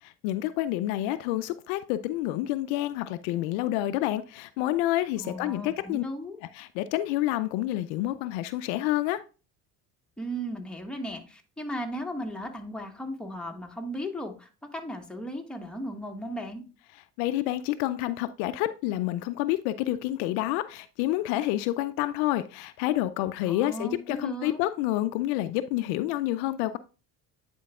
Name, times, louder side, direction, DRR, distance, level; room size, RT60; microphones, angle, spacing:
voice 1, 0.0-6.0 6.5-9.2 17.2-26.8, left 15 dB, 70° left, 0.5 m, -28 dB
voice 2, 5.2-6.4 10.2-16.6 23.4-24.6, equal, ahead, 1.4 m, -36 dB
10.0 x 4.5 x 2.3 m
hypercardioid pair, 65°, 44 cm